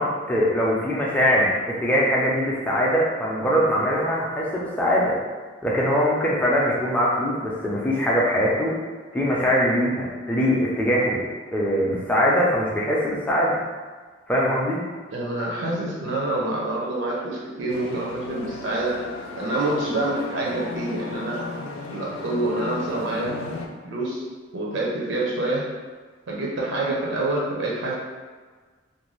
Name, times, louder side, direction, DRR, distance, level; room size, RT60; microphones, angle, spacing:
voice 1, 0.0-5.2 5.6-8.7 9.1-11.3 11.5-13.6 14.3-14.8, equal, 10° left, -5 dB, 0.4 m, -22 dB
voice 2, 15.1-19.0 19.4-21.4 21.9-23.3 23.8-24.2 24.5-25.7 26.3-28.0, right 2 dB, 70° right, -3 dB, 0.5 m, -26 dB
sound 1, 17.7-23.7, left 3 dB, 70° left, 0.3 m, -35 dB
2.5 x 2.2 x 3.0 m, 1.4 s
head